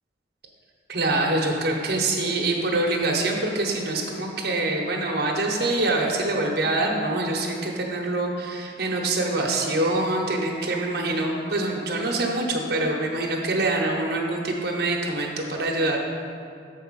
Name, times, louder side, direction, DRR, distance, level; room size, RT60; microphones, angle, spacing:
voice 1, 0.9-16.0, right 2 dB, 60° right, -1 dB, 1.0 m, -25 dB
6.5 x 4.6 x 6.3 m, 2.5 s
head